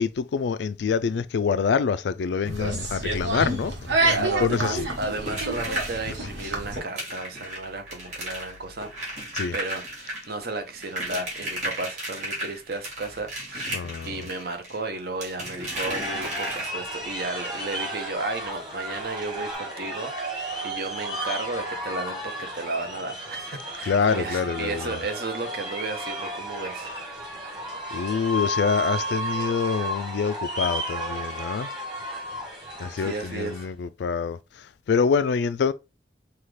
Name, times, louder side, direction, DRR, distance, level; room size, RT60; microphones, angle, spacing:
voice 1, 0.0-3.7 4.2-4.8 9.3-9.5 13.7-14.3 23.8-25.0 27.9-31.7 32.8-34.4 34.9-35.7, left 6 dB, 70° left, 0.3 m, -26 dB
sound 1, 2.4-6.8, right 2 dB, 90° right, 1.2 m, -28 dB
voice 2, 4.1-8.9 9.5-13.7 14.0-26.9 33.0-33.7, right 3 dB, 55° right, 0.8 m, -33 dB
sound 2, 4.5-17.1 18.5-18.6 18.9-19.0 19.5-19.6, right 1 dB, 40° right, 2.0 m, -35 dB
sound 3, 15.7-33.7, right 1 dB, 25° right, 1.5 m, -33 dB
5.7 x 2.3 x 3.2 m
head